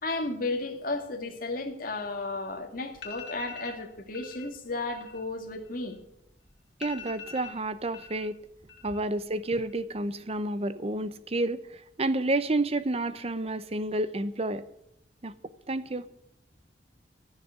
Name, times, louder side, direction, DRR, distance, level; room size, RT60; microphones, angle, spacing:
voice 1, 0.0-6.0, left 2 dB, 55° left, 2.1 m, -33 dB
sound 1, 2.5-2.6 2.9-3.8 4.1-4.5 4.8-6.2 6.5-6.6 6.8-8.3 8.6-9.2 9.4-10.0, left 7 dB, 80° left, 2.5 m, -44 dB
voice 2, 6.8-8.4 8.8-11.6 12.0-14.6 15.2-15.3 15.7-16.0, right 2 dB, 35° right, 0.8 m, -30 dB
14.5 x 6.7 x 9.4 m
head